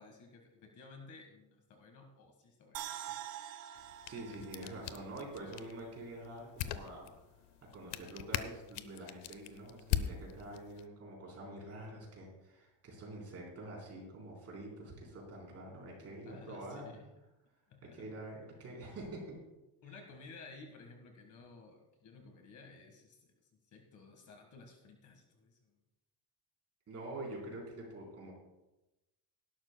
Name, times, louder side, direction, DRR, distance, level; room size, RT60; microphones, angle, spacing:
voice 1, 0.0-3.0 16.2-17.0 17.7-18.1 19.8-23.3 23.7-25.8, left 3 dB, 45° left, 3 dB, 1.6 m, -55 dB
sound 1, 2.7-6.0 6.3-6.4, right 11 dB, 80° right, 0.7 m, -46 dB
sound 2, 3.7-10.9, left 11 dB, 85° left, 0.8 m, -42 dB
voice 2, 4.1-7.1 7.7-17.0 17.8-19.4 26.9-28.3, right 1 dB, 35° right, -2 dB, 3.9 m, -46 dB
18.5 x 12.0 x 2.2 m, 1.0 s
cardioid pair, 165°, 44 cm